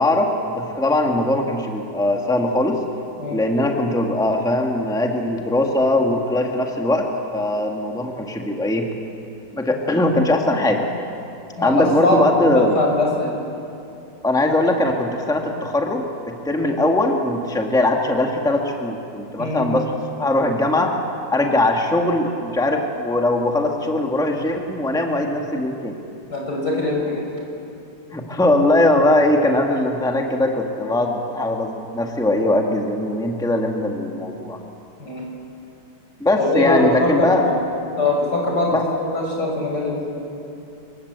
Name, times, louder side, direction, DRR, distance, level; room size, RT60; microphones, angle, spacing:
voice 1, 0.0-2.8 3.3-8.9 9.5-10.9 11.6-12.8 14.2-20.9 21.3-26.0 28.1-34.6 36.2-37.5 38.7-38.9, left 1 dB, ahead, 2 dB, 1.9 m, -20 dB
voice 2, 11.6-13.3 19.4-19.6 26.3-27.2 35.0-35.2 36.4-37.6 38.0-40.2, left 2 dB, 75° left, -1 dB, 6.5 m, -22 dB
27.0 x 22.5 x 8.2 m, 2.7 s
omnidirectional pair, 1.8 m